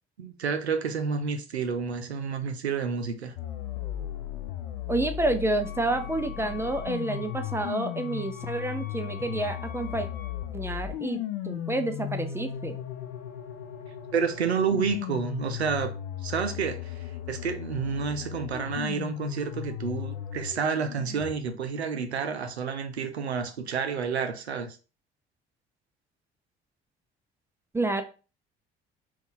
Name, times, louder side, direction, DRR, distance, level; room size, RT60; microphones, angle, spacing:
voice 1, 0.2-3.3 14.1-15.9 16.2-16.9 17.3-24.8, right 6 dB, 85° right, 0.5 m, -29 dB
sound 1, 3.4-21.3, left 10 dB, 65° left, 0.6 m, -36 dB
voice 2, 4.9-10.1 10.5-12.8 27.7-28.0, right 2 dB, 10° right, 0.5 m, -29 dB
Wind instrument woodwind instrument, 5.6-10.5, left 10 dB, 30° left, 1.1 m, -46 dB
3.7 x 2.4 x 3.8 m
figure-of-eight pair, 50°, 32 cm